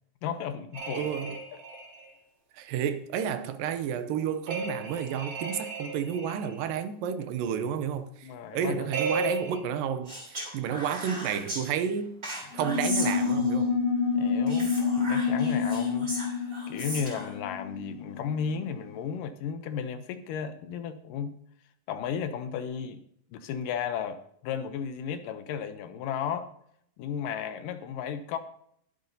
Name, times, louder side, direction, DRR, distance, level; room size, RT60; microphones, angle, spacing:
voice 1, 0.2-1.1 8.2-8.9 14.2-21.4 21.9-23.0 23.3-26.5 27.0-28.4, left 7 dB, 80° left, 2.3 m, -34 dB
sound 1, 0.7-2.1 4.5-6.6 8.9-9.6, right 3 dB, 55° right, 3.1 m, -34 dB
voice 2, 0.9-1.4 2.5-12.1 12.5-13.8, right 8 dB, 80° right, 2.4 m, -31 dB
Speech, 10.1-11.6 12.2-13.7 14.5-17.3, right 1 dB, 20° right, 3.4 m, -37 dB
sound 2, 12.5-18.5, left 5 dB, 60° left, 1.9 m, -28 dB
21.0 x 7.8 x 2.8 m
omnidirectional pair, 4.0 m